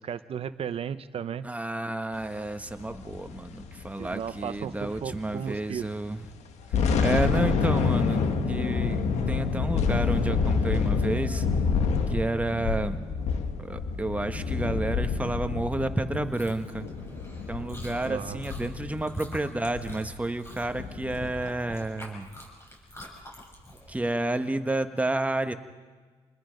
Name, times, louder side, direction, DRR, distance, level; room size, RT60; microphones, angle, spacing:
voice 1, 0.0-1.5 4.0-5.9 18.0-18.4, right 8 dB, 60° right, 13 dB, 0.8 m, -35 dB
voice 2, 1.4-6.2 7.0-11.4 12.1-13.0 13.6-16.9 17.5-22.3 23.9-25.5, right 2 dB, 10° right, 8 dB, 1.4 m, -30 dB
sound 1, 2.7-5.5 5.8-5.9 6.4-21.3, left 5 dB, 85° left, 1.7 m, -28 dB
Chewing mastication, 16.1-24.0, left 1 dB, 25° left, 7.2 m, -46 dB
28.5 x 20.5 x 5.3 m, 1.4 s
cardioid pair, 85°, 11 cm